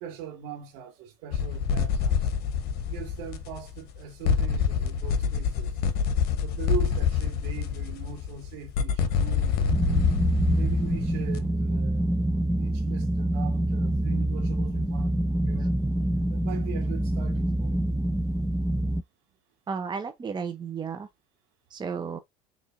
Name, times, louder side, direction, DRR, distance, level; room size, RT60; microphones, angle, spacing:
voice 1, 0.0-2.3 2.8-5.7 6.4-9.8 10.5-12.2 12.6-15.8 16.3-17.8, right 8 dB, 65° right, 2.0 m, -41 dB
sound 1, 1.3-4.0 4.2-11.5, left 7 dB, 60° left, 0.9 m, -26 dB
sound 2, 9.7-19.0, right 1 dB, 5° right, 0.3 m, -26 dB
voice 2, 19.7-21.1 21.7-22.2, right 6 dB, 25° right, 0.8 m, -33 dB
6.3 x 3.2 x 2.6 m
hypercardioid pair, 70°, 19 cm